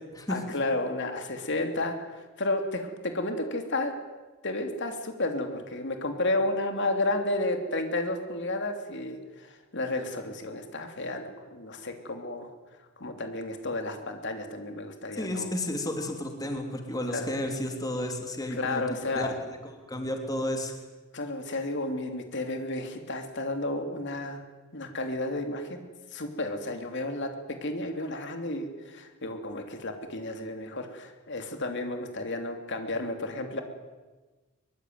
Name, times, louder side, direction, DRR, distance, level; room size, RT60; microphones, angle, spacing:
voice 1, 0.3-3.9 4.4-12.5 13.0-15.5 17.1-17.4 18.6-19.4 21.1-24.4 24.7-25.8 26.1-27.3 27.6-33.6, left 2 dB, 55° left, 5 dB, 3.1 m, -32 dB
voice 2, 15.1-19.3 19.6-20.7, left 1 dB, 15° left, 3 dB, 3.2 m, -32 dB
24.0 x 23.0 x 9.5 m, 1.2 s
head